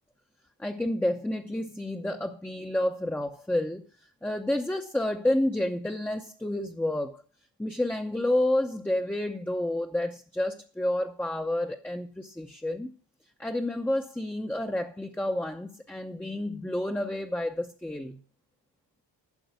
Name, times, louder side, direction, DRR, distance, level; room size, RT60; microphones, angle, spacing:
voice 1, 0.6-3.8 4.2-7.2 7.6-12.9 13.4-18.2, left 1 dB, 5° left, 3 dB, 0.6 m, -29 dB
12.0 x 4.7 x 8.1 m, 0.40 s
wide cardioid pair, 125°, 46 cm